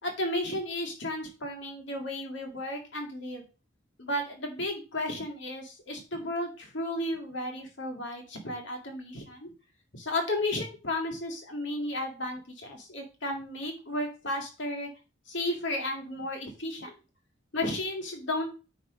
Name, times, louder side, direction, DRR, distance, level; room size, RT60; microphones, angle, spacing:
voice 1, 0.0-3.4 4.0-9.5 9.9-14.9 15.3-16.9 17.5-18.5, left 1 dB, 70° left, 2 dB, 2.4 m, -33 dB
9.4 x 3.4 x 5.0 m, 0.33 s
head